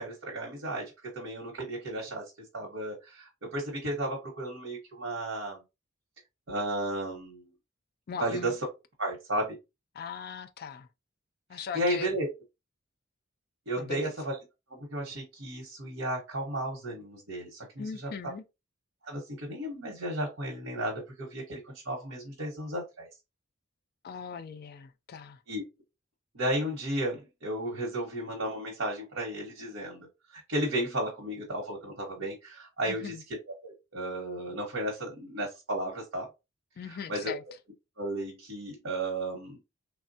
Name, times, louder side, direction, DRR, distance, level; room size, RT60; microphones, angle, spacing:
voice 1, 0.0-2.2 2.5-5.6 6.5-7.5 8.2-8.6 9.0-9.6 11.5-12.3 13.7-14.4 14.7-18.1 19.0-23.1 25.5-25.6 26.3-33.4 33.6-36.3 36.9-37.3 38.0-39.6, right 1 dB, 65° right, 0.9 m, -34 dB
voice 2, 8.1-8.5 10.0-10.9 11.5-12.1 13.8-14.1 17.8-18.4 24.0-25.4 32.8-33.2 36.8-37.4, left 6 dB, 50° left, 0.3 m, -39 dB
3.2 x 2.1 x 2.6 m
head